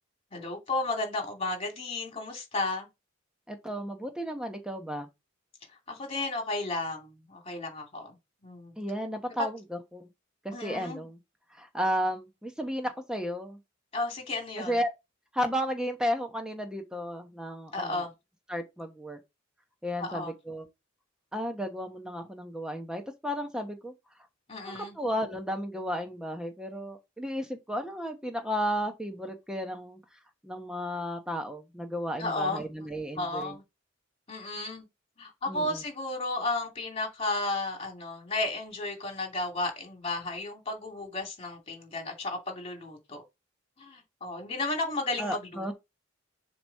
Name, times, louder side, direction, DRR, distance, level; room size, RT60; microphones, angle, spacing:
voice 1, 0.3-2.9 5.9-8.2 8.4-8.7 10.5-11.1 13.9-14.8 17.7-18.1 20.0-20.3 24.5-24.9 32.2-32.7 33.2-33.6 34.3-34.9 35.2-43.2 43.8-45.7, left 2 dB, 30° left, 2.6 m, -33 dB
voice 2, 3.5-5.1 8.8-10.1 10.4-11.2 11.5-13.6 14.7-14.9 15.3-18.0 18.5-19.2 19.8-20.7 21.3-23.9 24.7-30.0 30.4-33.6 35.5-35.8 45.2-45.7, equal, 5° right, 1.1 m, -33 dB
7.1 x 3.1 x 5.3 m
head